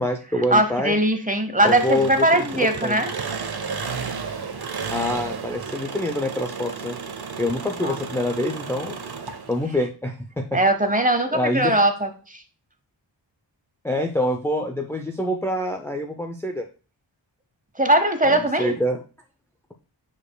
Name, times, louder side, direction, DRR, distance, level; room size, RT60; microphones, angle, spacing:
voice 1, 0.0-1.0 1.6-2.4 2.8-3.0 4.9-7.0 7.4-9.1 9.5-10.6 11.3-11.7 13.8-16.7 18.2-19.0, left 1 dB, 5° left, 3 dB, 0.5 m, -26 dB
voice 2, 0.5-3.1 7.8-8.0 10.5-12.4 17.8-18.7, right 1 dB, 20° right, 8 dB, 0.9 m, -20 dB
Engine, 1.6-9.7, right 5 dB, 55° right, 0.8 m, -33 dB
8.6 x 5.0 x 2.2 m, 0.35 s
wide cardioid pair, 65°, 45 cm